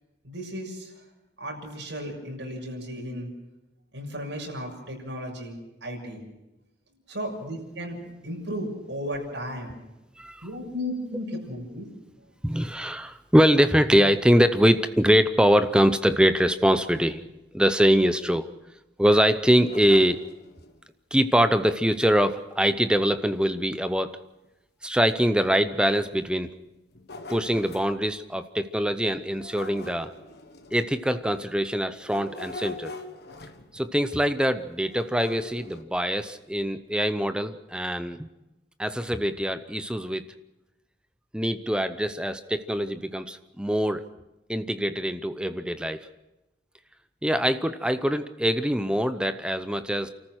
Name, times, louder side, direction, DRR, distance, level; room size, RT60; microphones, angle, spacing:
voice 1, 0.2-1.0 1.4-3.3 3.9-6.2 7.1-9.7 10.4-11.9, equal, 85° right, 0 dB, 6.7 m, -35 dB
voice 2, 10.2-10.5 12.4-17.2 17.5-18.5 19.0-20.3 21.1-24.2 24.8-26.5 27.3-30.1 30.7-32.9 33.7-38.3 38.8-40.2 41.3-44.0 44.5-46.1 47.2-50.1, equal, 5° right, 11 dB, 0.7 m, -23 dB
sound 1, 19.4-20.8 23.0-23.1 23.6-23.7 24.4-24.5 25.1-25.2 26.7-28.0 29.3-31.2 32.0-33.9 34.9-35.8, left 2 dB, 60° left, 1.6 m, -42 dB
29.5 x 14.0 x 6.3 m, 0.97 s
head